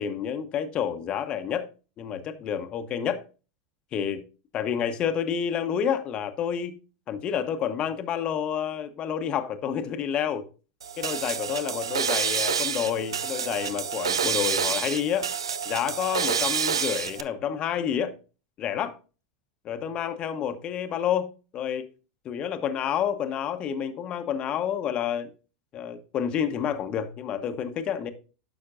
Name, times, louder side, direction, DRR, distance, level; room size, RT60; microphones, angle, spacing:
voice 1, 0.0-1.7 2.0-3.2 3.9-4.2 4.5-6.7 7.1-10.5 11.0-15.3 15.7-18.1 18.6-18.9 19.6-21.8 22.2-25.3 25.7-28.1, left 8 dB, 40° left, 0.9 m, -29 dB
sound 1, 10.8-17.2, right 7 dB, 85° right, 0.5 m, -28 dB
9.7 x 6.3 x 2.5 m
hypercardioid pair, 90°, 3 cm